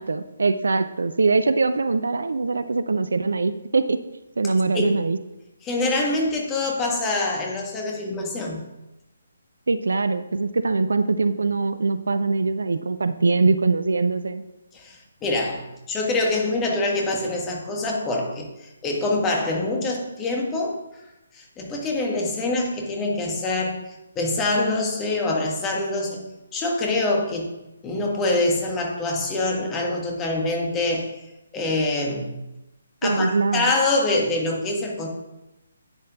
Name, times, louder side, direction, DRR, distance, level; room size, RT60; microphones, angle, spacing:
voice 1, 0.0-4.0 4.4-5.2 9.7-14.4 33.0-33.7, right 3 dB, 60° right, 11 dB, 0.6 m, -22 dB
voice 2, 4.4-4.9 5.6-8.6 14.7-20.8 21.3-27.5 27.8-31.1 31.5-32.4 33.0-35.1, left 2 dB, 15° left, 0 dB, 1.6 m, -25 dB
11.0 x 8.6 x 3.7 m, 0.96 s
figure-of-eight pair, 140°, 0 cm